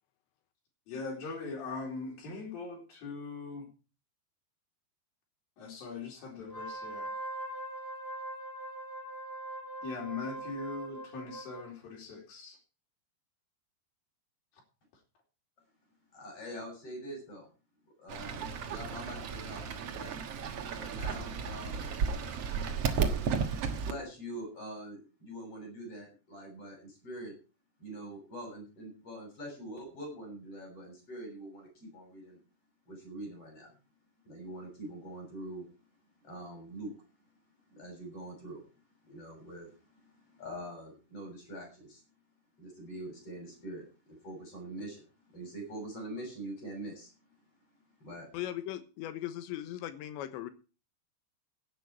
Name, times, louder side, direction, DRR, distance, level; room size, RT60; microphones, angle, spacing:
voice 1, 0.9-3.7 5.6-7.1 9.8-12.6, left 4 dB, 55° left, 0 dB, 5.6 m, -41 dB
Wind instrument woodwind instrument, 6.4-11.7, right 1 dB, 15° right, 4.8 m, -41 dB
voice 2, 16.1-17.5 18.0-20.1 20.7-22.0 23.0-27.3 27.8-32.4 32.9-33.7 34.2-35.7 36.2-36.9 37.7-38.6 39.0-42.0 42.6-47.1 48.0-48.3, right 1 dB, 30° left, 2 dB, 8.2 m, -44 dB
Fowl / Bird, 18.1-23.9, right 6 dB, 70° right, 1.4 m, -34 dB
voice 3, 48.3-50.5, left 12 dB, 85° left, 10 dB, 3.5 m, -38 dB
16.5 x 9.2 x 4.7 m, 0.34 s
omnidirectional pair, 5.1 m